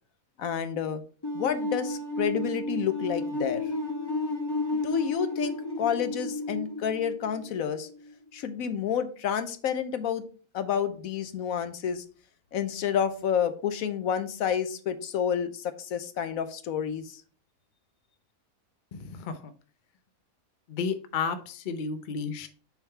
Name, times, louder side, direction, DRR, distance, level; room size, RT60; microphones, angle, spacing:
voice 1, 0.4-1.0 1.3-3.7 4.7-7.9 8.3-10.2 10.5-12.0 12.5-17.2, left 8 dB, 70° left, 10 dB, 1.1 m, -29 dB
sound 1, 1.2-8.1, left 2 dB, 15° left, 1.2 m, -32 dB
voice 2, 18.9-19.5 20.7-22.5, left 5 dB, 50° left, 9 dB, 0.6 m, -32 dB
7.1 x 3.7 x 4.4 m, 0.40 s
omnidirectional pair, 1.6 m